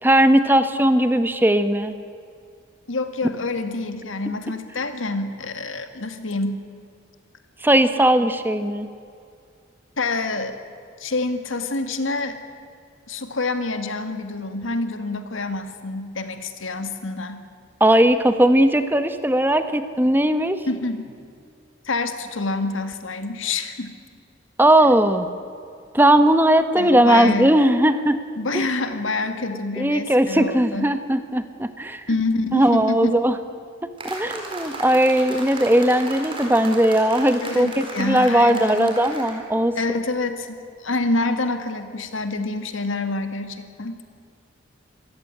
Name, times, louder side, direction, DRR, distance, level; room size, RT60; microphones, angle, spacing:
voice 1, 0.0-1.9 7.6-8.9 17.8-20.6 24.6-25.3 25.9-28.2 28.5-28.6 29.8-32.0 32.5-33.3 34.0-39.8, right 1 dB, 10° right, 10 dB, 0.9 m, -18 dB
voice 2, 2.9-6.6 10.0-10.6 11.0-12.4 13.1-17.4 20.7-21.1 21.8-23.9 26.8-27.5 28.4-30.9 32.1-33.2 37.4-39.0 39.8-44.0, left 3 dB, 85° left, 8 dB, 2.0 m, -27 dB
sound 1, 34.0-39.4, right 2 dB, 25° right, 4.3 m, -35 dB
26.5 x 15.5 x 9.8 m, 2.4 s
head